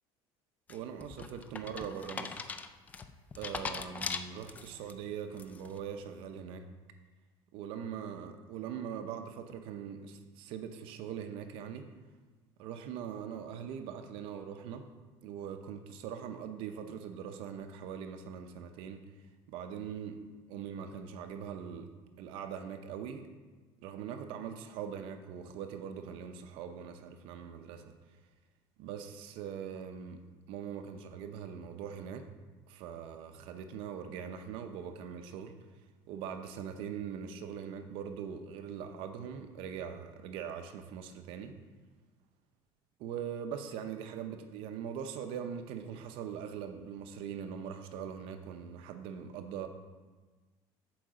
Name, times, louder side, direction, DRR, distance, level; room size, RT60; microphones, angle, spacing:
sound 1, 0.7-4.9 5.4-5.8, left 5 dB, 15° left, 0.3 m, -40 dB
voice 1, 0.7-2.4 3.4-6.7 7.5-11.9 12.6-14.9 15.2-19.1 19.5-21.9 22.2-23.3 23.8-27.9 28.8-30.2 30.5-32.3 32.7-35.5 36.1-41.6 43.0-49.7, right 8 dB, 60° right, 7 dB, 0.6 m, -42 dB
8.9 x 4.7 x 6.4 m, 1.3 s
cardioid pair, 180°, 10 cm